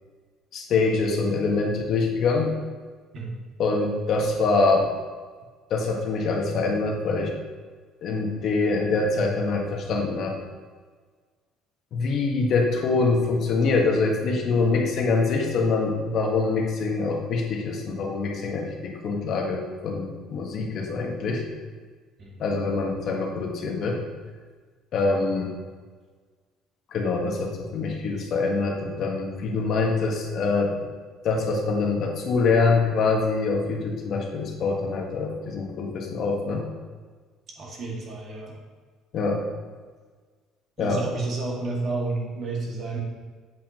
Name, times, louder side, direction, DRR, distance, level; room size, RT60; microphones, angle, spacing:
voice 1, 0.5-2.5 3.6-4.9 5.7-7.3 8.0-10.3 11.9-21.4 22.4-24.0 24.9-25.5 26.9-30.7 31.2-36.6 39.1-39.4 40.8-41.0, left 3 dB, 50° left, 1 dB, 1.5 m, -24 dB
voice 2, 37.6-38.6 40.8-43.0, right 3 dB, 45° right, -2 dB, 2.1 m, -31 dB
8.3 x 7.7 x 3.0 m, 1.5 s
cardioid pair, 125°, 0 cm